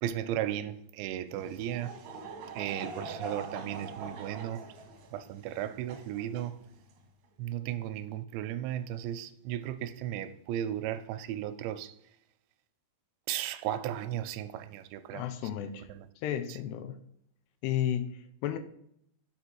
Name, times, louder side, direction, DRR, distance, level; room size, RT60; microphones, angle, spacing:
voice 1, 0.0-2.0 2.5-4.6 5.1-6.6 7.4-12.0 13.3-15.3 15.9-16.1 16.5-16.6, right 11 dB, 85° right, 2.8 m, -35 dB
Laughter / Crowd, 1.3-7.0, right 4 dB, 70° right, 1.9 m, -43 dB
voice 2, 15.1-15.9 16.2-17.0 17.6-18.6, left 10 dB, 85° left, 2.7 m, -33 dB
6.8 x 4.9 x 4.6 m
omnidirectional pair, 4.9 m